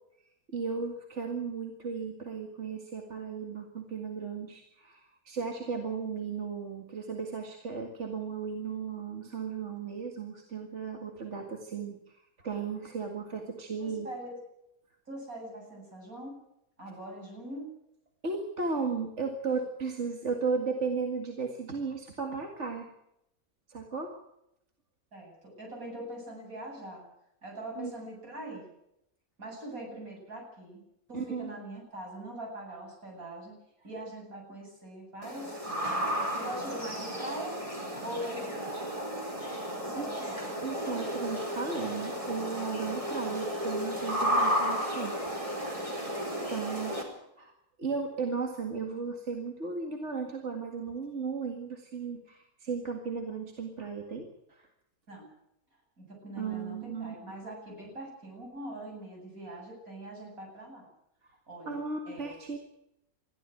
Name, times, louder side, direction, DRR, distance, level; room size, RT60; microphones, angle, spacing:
voice 1, 0.5-14.1 18.2-22.9 23.7-24.1 27.8-27.9 31.1-31.5 40.0-40.1 40.6-45.4 46.5-46.9 47.4-47.5 47.8-54.7 56.4-57.1 61.2-61.3 61.7-62.6, right 5 dB, 50° right, 3 dB, 2.3 m, -35 dB
voice 2, 13.8-14.4 15.1-16.4 16.8-17.7 25.1-27.1 27.4-28.7 29.4-30.8 31.1-33.6 33.8-36.1 36.3-37.6 38.0-38.7 39.8-40.5 55.1-55.3 56.0-60.9 61.5-62.4, right 1 dB, 65° right, 0 dB, 8.7 m, -42 dB
sound 1, 35.2-47.0, equal, 20° right, 4.4 m, -33 dB
22.0 x 14.5 x 9.2 m, 0.83 s
omnidirectional pair, 1.6 m